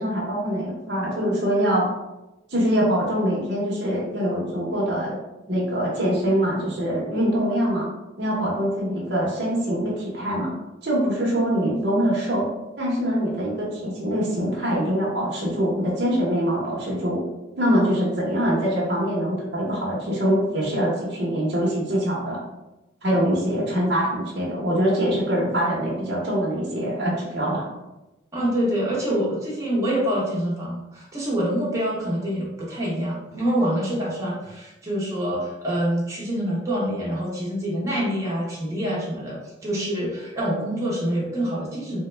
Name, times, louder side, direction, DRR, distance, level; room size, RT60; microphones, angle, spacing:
voice 1, 0.0-1.9 2.5-5.2 5.5-7.9 8.2-10.5 10.8-12.5 12.8-17.2 17.6-22.4 23.0-27.6, equal, 60° right, -5 dB, 0.9 m, -24 dB
voice 2, 28.3-42.0, equal, 15° right, -6 dB, 0.8 m, -26 dB
3.3 x 2.1 x 3.2 m, 0.99 s
head